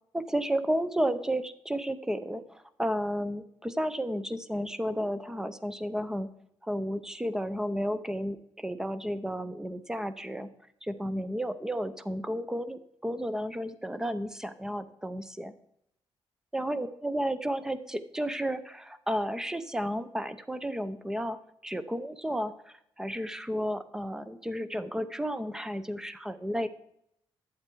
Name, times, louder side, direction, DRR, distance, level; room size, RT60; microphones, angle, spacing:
voice 1, 0.1-6.3 6.6-10.5 10.8-15.5 16.5-21.4 21.6-26.7, equal, 5° right, 13 dB, 0.6 m, -32 dB
12.0 x 8.0 x 4.6 m, 0.75 s
cardioid pair, 140°, 9 cm